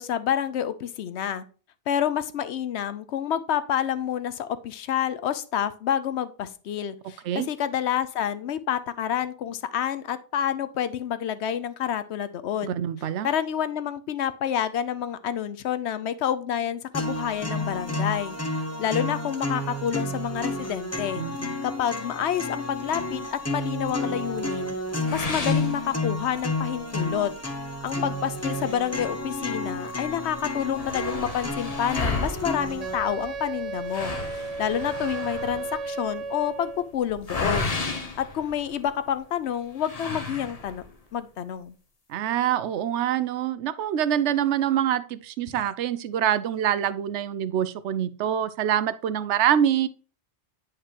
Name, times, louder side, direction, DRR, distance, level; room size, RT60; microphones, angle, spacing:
voice 1, 0.0-1.4 1.9-12.8 13.2-18.3 18.8-21.2 21.6-24.8 25.1-27.3 27.8-37.7 38.2-40.8 41.1-41.7 45.5-45.6, left 9 dB, 75° left, 0.9 m, -28 dB
voice 2, 7.0-7.5 12.6-13.3 21.1-21.5 42.1-49.9, right 10 dB, 85° right, 0.9 m, -25 dB
sound 1, 16.9-32.9, left 1 dB, 15° left, 0.7 m, -31 dB
sound 2, 25.0-26.5 26.9-27.0 27.5-27.6 28.4-29.7 30.0-30.1 30.4-39.1 39.8-40.9, left 3 dB, 35° left, 1.0 m, -34 dB
Wind instrument woodwind instrument, 32.8-36.9, right 4 dB, 55° right, 0.4 m, -34 dB
8.8 x 5.0 x 2.9 m
omnidirectional pair, 1.2 m